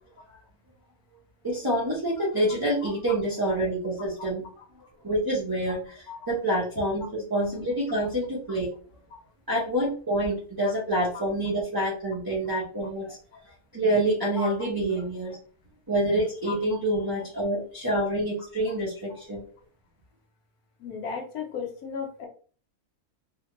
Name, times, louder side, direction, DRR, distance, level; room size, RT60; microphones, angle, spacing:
voice 1, 1.4-4.4 5.0-8.7 9.5-13.2 13.7-15.4 15.9-19.4, right 1 dB, 25° right, -8 dB, 0.4 m, -27 dB
voice 2, 20.8-22.3, left 5 dB, 80° left, 3 dB, 1.2 m, -35 dB
2.8 x 2.2 x 2.9 m, 0.41 s
omnidirectional pair, 1.6 m